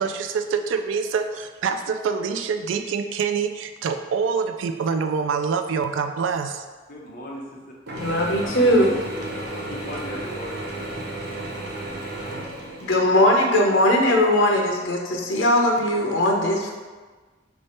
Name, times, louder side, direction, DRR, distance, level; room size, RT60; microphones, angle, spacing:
voice 1, 0.0-6.6, right 5 dB, 75° right, 7 dB, 0.3 m, -25 dB
voice 2, 6.9-7.4 8.1-10.6, left 1 dB, 45° left, -2 dB, 0.8 m, -37 dB
voice 3, 7.9-8.9 12.8-16.7, left 1 dB, 80° left, 1 dB, 0.7 m, -19 dB
Mechanisms / Drill, 7.9-13.4, right 1 dB, 55° right, 0.7 m, -33 dB
3.4 x 3.2 x 4.2 m, 1.3 s
head